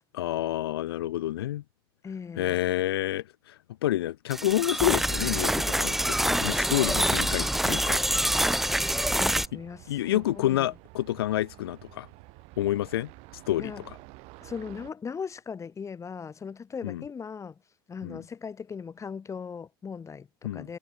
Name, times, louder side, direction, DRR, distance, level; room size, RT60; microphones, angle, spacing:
voice 1, 0.1-1.6 2.4-8.0 9.5-9.6 9.9-12.1 12.6-13.1 13.5-13.7 16.8-17.0 18.0-18.2 20.4-20.7, left 14 dB, 80° left, 0.4 m, -29 dB
voice 2, 2.0-2.6 8.9-10.7 13.6-13.8 14.4-17.6 17.9-20.8, left 6 dB, 25° left, 6.7 m, -39 dB
sound 1, 4.3-9.5, right 1 dB, ahead, 0.6 m, -26 dB
sound 2, 6.9-14.9, right 26 dB, 55° right, 4.7 m, -51 dB
hypercardioid pair, 95°, 13 cm